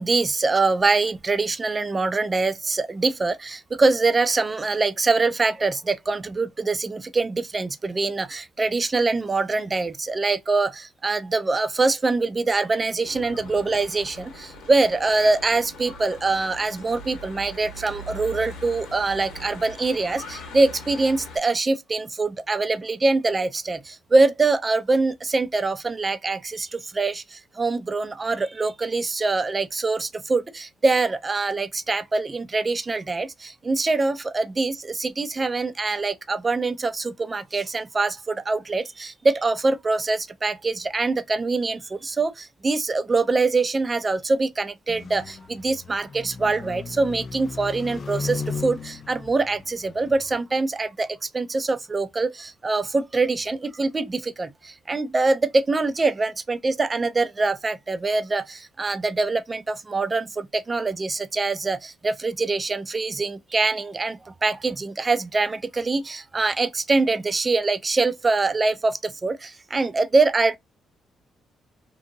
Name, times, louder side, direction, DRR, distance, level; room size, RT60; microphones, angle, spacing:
voice 1, 0.0-70.6, right 3 dB, 30° right, 0.4 m, -24 dB
Church bell / Traffic noise roadway noise, 13.0-21.4, left 1 dB, 90° left, 1.2 m, -41 dB
sound 1, 44.9-50.4, left 4 dB, 45° left, 0.3 m, -36 dB
2.7 x 2.6 x 2.6 m
cardioid pair, 90°, 0 cm